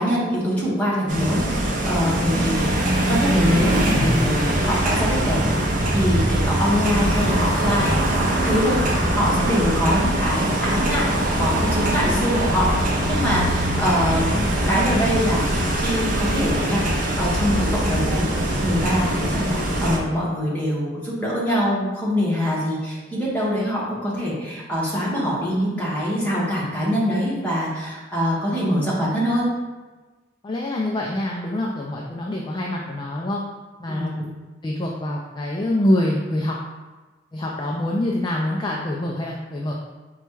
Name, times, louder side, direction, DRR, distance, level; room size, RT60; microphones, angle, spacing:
voice 1, 0.0-8.0 8.4-16.8 17.2-29.5 33.9-34.2, equal, 10° left, -7 dB, 1.1 m, -24 dB
sound 1, 1.1-20.0, right 1 dB, 45° right, 0.6 m, -22 dB
voice 2, 30.4-33.4 33.8-34.1 34.6-36.6 37.3-39.7, left 1 dB, 25° left, -2 dB, 0.3 m, -25 dB
4.2 x 2.3 x 4.5 m, 1.2 s
head